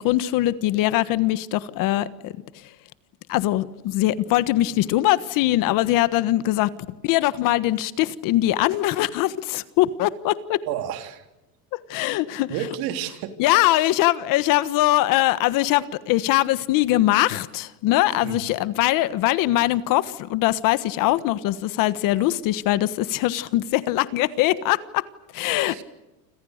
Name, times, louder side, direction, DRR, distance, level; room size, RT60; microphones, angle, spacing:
voice 1, 0.0-2.3 3.3-6.7 7.0-10.6 11.7-12.5 13.4-25.0 25.3-25.8, left 15 dB, 50° left, 15 dB, 1.4 m, -22 dB
voice 2, 10.6-11.3 12.5-13.4 18.2-18.4 25.7-25.8, right 10 dB, 60° right, 7 dB, 3.5 m, -30 dB
29.5 x 26.5 x 6.6 m, 1.0 s
cardioid pair, 150°, 41 cm